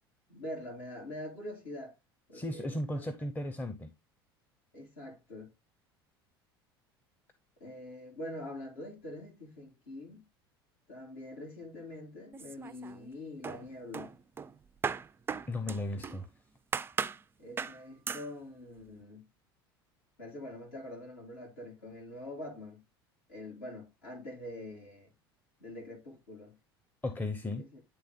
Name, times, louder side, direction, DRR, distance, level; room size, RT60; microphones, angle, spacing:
voice 1, 0.3-2.0 2.3-3.1 4.7-5.5 7.6-10.3 10.9-14.1 15.9-16.2 17.4-19.2 20.2-22.8 23.3-25.1 25.6-26.5 27.6-27.8, left 1 dB, 70° left, 3.6 m, -44 dB
voice 2, 2.3-3.9 15.5-16.3 27.0-27.6, left 1 dB, 15° left, 0.8 m, -35 dB
sound 1, 12.3-13.1 13.4-16.2 16.7-17.2 17.6-17.8 18.1-18.3, right 6 dB, 20° right, 0.3 m, -37 dB
9.4 x 3.6 x 3.6 m
figure-of-eight pair, 70°, 13 cm